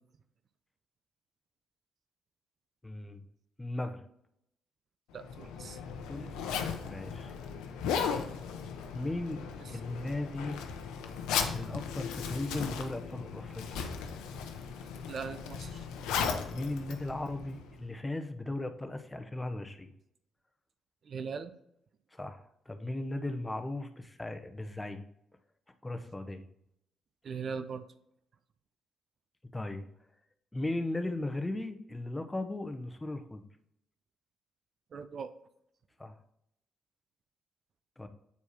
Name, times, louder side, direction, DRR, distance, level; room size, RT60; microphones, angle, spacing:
voice 1, 2.8-3.2 3.6-4.0 6.1-6.4 6.8-7.3 8.9-9.4 9.7-10.6 11.5-13.6 16.2-19.9 22.1-25.0 25.8-26.5 29.5-29.8 30.5-33.4 36.0-36.2 38.0-38.1, left 2 dB, 15° left, 8 dB, 0.9 m, -37 dB
voice 2, 5.1-5.8 15.1-15.8 21.1-21.5 27.2-27.8 34.9-35.3, right 5 dB, 55° right, 10 dB, 0.5 m, -39 dB
Zipper (clothing), 5.2-17.8, left 6 dB, 80° left, 0.7 m, -37 dB
8.2 x 4.6 x 2.9 m, 0.77 s
supercardioid pair, 55°, 0 cm